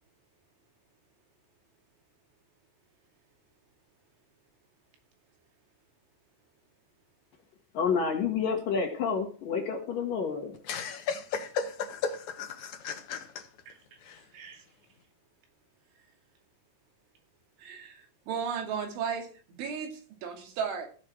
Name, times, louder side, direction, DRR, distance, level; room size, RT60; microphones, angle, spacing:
voice 1, 7.7-10.5, left 6 dB, 55° left, 3.2 m, -29 dB
voice 2, 10.7-13.4 14.1-14.2, left 6 dB, 70° left, 1.8 m, -34 dB
voice 3, 17.6-19.3 19.6-20.9, right 6 dB, 85° right, 4.9 m, -35 dB
16.0 x 6.2 x 6.3 m
omnidirectional pair, 5.3 m